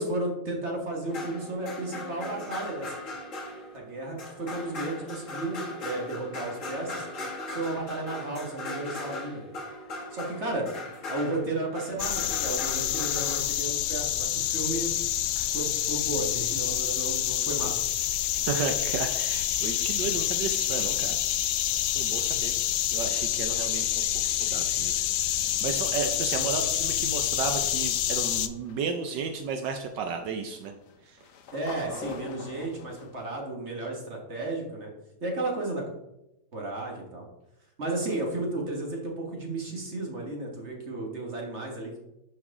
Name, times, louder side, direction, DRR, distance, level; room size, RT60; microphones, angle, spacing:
voice 1, 0.0-2.9 3.7-7.0 7.5-9.4 10.1-10.7 11.0-14.9 15.5-17.8 31.5-34.9 35.2-35.8 36.5-37.3 37.8-42.0, right 2 dB, 40° right, 0 dB, 1.6 m, -33 dB
sound 1, 1.1-13.4, left 2 dB, 45° left, 1.8 m, -39 dB
sound 2, 12.0-28.5, left 12 dB, 85° left, 1.3 m, -27 dB
voice 2, 18.5-21.2 21.9-22.5 22.9-25.0 25.6-30.7 31.1-31.2, right 5 dB, 75° right, 5 dB, 1.3 m, -33 dB
sound 3, 27.4-33.3, left 5 dB, 65° left, 1.3 m, -45 dB
11.0 x 4.6 x 3.7 m, 0.91 s
omnidirectional pair, 2.0 m